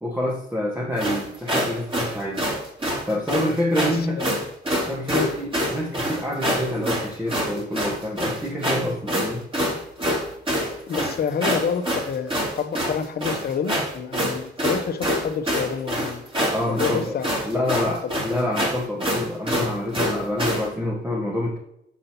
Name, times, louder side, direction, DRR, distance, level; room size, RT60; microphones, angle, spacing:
voice 1, 0.0-2.4 3.1-4.2 4.8-9.7 16.5-17.2 17.4-21.6, left 1 dB, 10° right, -1 dB, 1.5 m, -27 dB
sound 1, 1.0-20.7, equal, 25° right, 3.0 m, -26 dB
voice 2, 3.8-4.5 5.1-5.3 10.9-16.2 16.7-17.3 17.6-18.1, left 6 dB, 50° left, 7 dB, 1.0 m, -28 dB
8.1 x 7.3 x 2.9 m, 0.80 s
cardioid pair, 90°, 20 cm